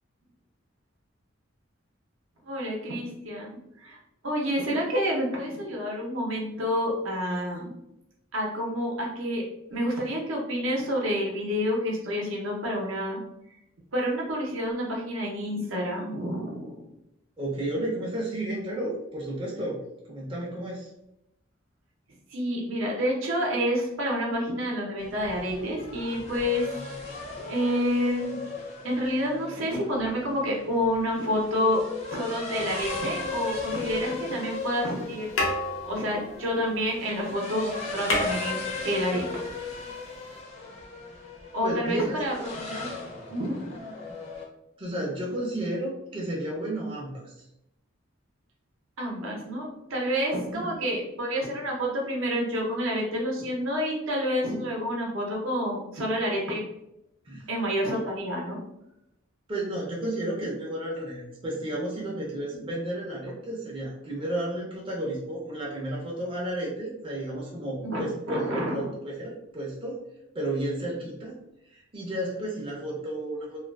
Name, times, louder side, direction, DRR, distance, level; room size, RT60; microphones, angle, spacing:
voice 1, 2.4-4.0 4.2-7.7 8.3-9.4 9.7-13.2 13.9-16.9 22.3-26.7 27.5-28.4 28.8-31.8 32.1-35.3 35.8-38.6 38.8-39.4 41.5-42.3 42.6-42.9 43.3-43.6 49.0-56.6 57.5-58.6 67.8-68.0 68.3-68.8, equal, 70° right, -2 dB, 0.6 m, -28 dB
voice 2, 17.4-20.9 41.6-42.2 44.8-47.3 50.5-51.0 57.2-57.5 59.5-70.0 70.3-71.4 71.7-73.6, right 1 dB, 25° right, -4 dB, 0.5 m, -32 dB
sound 1, 25.0-44.5, left 3 dB, 30° left, 0.4 m, -37 dB
sound 2, 32.9-34.0 34.9-35.1 35.3-37.2 37.5-37.6 37.8-39.2 40.4-40.5, left 2 dB, 80° left, 0.6 m, -31 dB
2.3 x 2.3 x 2.2 m, 0.85 s
head